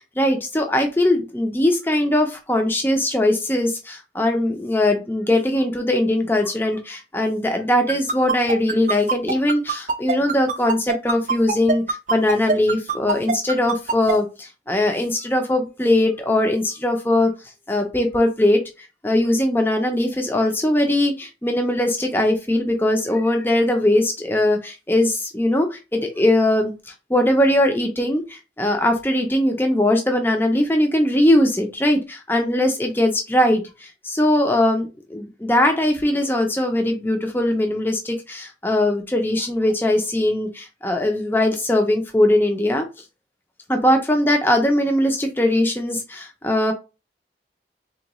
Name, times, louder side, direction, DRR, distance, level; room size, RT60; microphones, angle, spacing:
voice 1, 0.2-17.3 17.7-18.6 19.0-26.7 27.1-42.9 43.7-46.7, left 1 dB, 10° left, 4 dB, 0.4 m, -20 dB
sound 1, 7.9-14.1, right 4 dB, 45° right, 0.5 m, -22 dB
3.6 x 2.2 x 2.9 m, 0.28 s
head